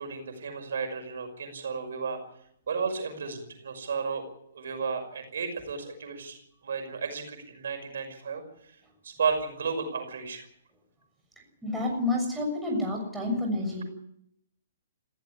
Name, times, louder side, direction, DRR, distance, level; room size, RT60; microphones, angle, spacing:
voice 1, 0.0-2.2 2.7-4.2 4.5-6.4 6.6-8.8 9.0-10.4, right 5 dB, 75° right, 6 dB, 5.8 m, -33 dB
voice 2, 11.6-13.8, left 2 dB, 5° right, -1 dB, 6.8 m, -29 dB
20.0 x 16.0 x 9.7 m, 0.73 s
hypercardioid pair, 155°, 0 cm